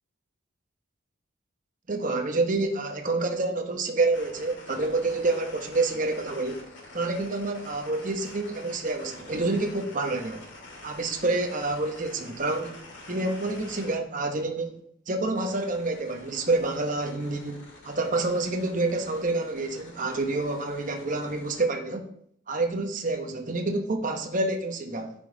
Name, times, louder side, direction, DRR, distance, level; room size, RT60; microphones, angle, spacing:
voice 1, 1.9-6.6 6.9-10.5 10.8-12.8 13.1-14.8 15.1-22.1 22.5-25.1, right 2 dB, 40° right, 4 dB, 0.9 m, -28 dB
sound 1, 4.1-14.0 15.3-21.6, left 2 dB, 65° left, 2.1 m, -47 dB
9.1 x 5.2 x 3.8 m, 0.69 s
head